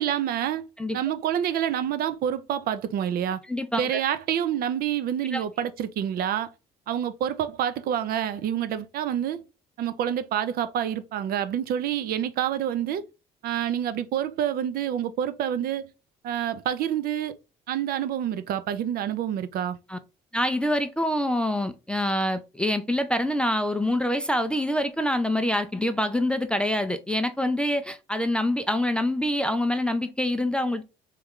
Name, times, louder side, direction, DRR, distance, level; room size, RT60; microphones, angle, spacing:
voice 1, 0.0-0.6 0.9-3.4 3.7-6.5 6.9-9.4 9.8-13.0 13.4-15.9 16.2-17.4 17.7-19.8, right 10 dB, 65° right, 0.5 m, -27 dB
voice 2, 3.5-4.0 5.3-5.4 19.9-20.0 20.3-30.8, left 1 dB, 5° left, 0.3 m, -26 dB
3.1 x 2.3 x 3.5 m
cardioid pair, 110°, 17 cm